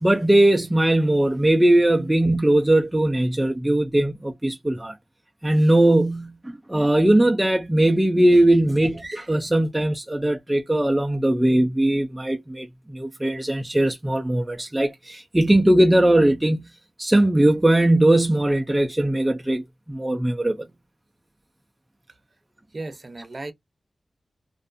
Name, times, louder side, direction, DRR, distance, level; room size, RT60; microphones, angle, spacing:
voice 1, 0.0-4.9 5.4-12.7 12.9-16.7 17.0-20.6, right 1 dB, 10° right, 0.4 m, -19 dB
voice 2, 22.7-23.5, right 2 dB, 40° right, 0.7 m, -35 dB
2.5 x 2.3 x 2.5 m
wide cardioid pair, 105°, 0 cm